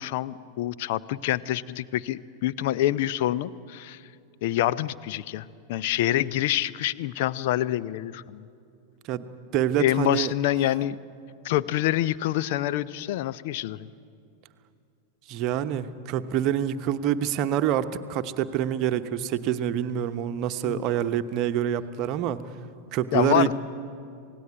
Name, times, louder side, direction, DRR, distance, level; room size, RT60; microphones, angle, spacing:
voice 1, 0.0-4.0 4.4-8.5 9.8-11.0 11.4-13.9 20.6-20.8 23.1-23.5, left 13 dB, 50° left, 16 dB, 0.6 m, -26 dB
voice 2, 9.5-10.3 15.3-22.4 22.9-23.5, right 10 dB, 40° right, 10 dB, 1.0 m, -26 dB
27.0 x 18.0 x 9.4 m, 2.6 s
figure-of-eight pair, 90°, 0 cm